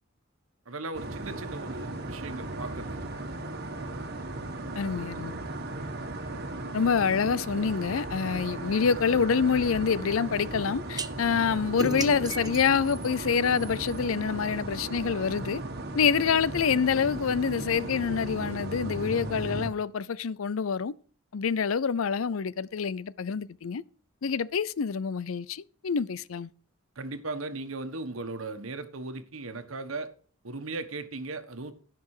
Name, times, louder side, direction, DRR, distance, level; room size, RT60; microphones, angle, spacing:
voice 1, 0.6-3.0 26.9-30.1 30.4-31.7, right 3 dB, 85° right, 1.4 m, -37 dB
sound 1, 0.9-19.7, right 2 dB, 55° right, 1.8 m, -36 dB
voice 2, 4.8-5.4 6.7-15.6 15.9-20.9 21.3-23.8 24.2-26.5, left 6 dB, 80° left, 0.5 m, -26 dB
sound 2, 11.0-11.1 11.8-14.0, right 3 dB, 20° right, 0.8 m, -35 dB
16.0 x 6.0 x 4.8 m
head